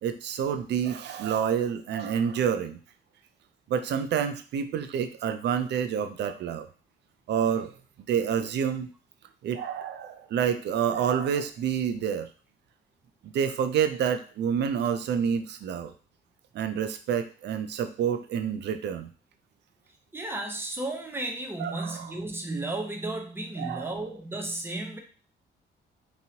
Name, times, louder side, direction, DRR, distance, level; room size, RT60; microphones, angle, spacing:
voice 1, 0.0-2.8 3.7-6.7 7.3-7.7 8.1-8.9 9.4-12.3 13.2-15.9 16.5-19.1 21.6-22.1 23.6-24.0, right 8 dB, 60° right, 10 dB, 0.4 m, -28 dB
voice 2, 20.1-25.0, right 2 dB, 10° right, 3 dB, 0.7 m, -33 dB
2.9 x 2.7 x 2.8 m, 0.38 s
cardioid pair, 90°, 20 cm